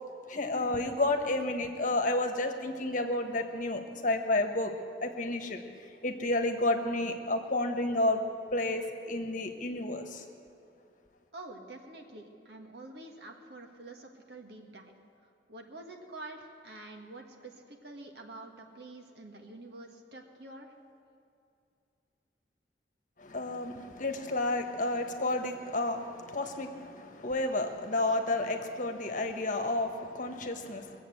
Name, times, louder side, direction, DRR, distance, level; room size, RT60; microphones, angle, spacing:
voice 1, 0.3-4.7 5.0-5.6 6.0-8.2 8.5-10.2 23.2-31.0, left 2 dB, 45° left, 5 dB, 1.2 m, -31 dB
voice 2, 11.3-14.9 15.5-20.7, right 2 dB, 65° right, 2 dB, 1.7 m, -47 dB
21.5 x 7.9 x 7.8 m, 2.6 s
head